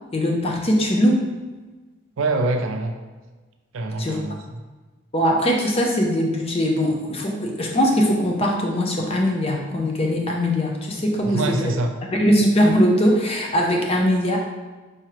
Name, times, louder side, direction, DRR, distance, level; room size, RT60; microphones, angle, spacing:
voice 1, 0.1-1.3 4.0-4.2 5.1-11.7 12.1-14.4, equal, 25° left, 0 dB, 0.5 m, -21 dB
voice 2, 2.2-3.0 3.7-4.6 11.2-11.9, right 2 dB, 65° right, 5 dB, 0.4 m, -25 dB
4.8 x 3.0 x 2.9 m, 1.3 s
head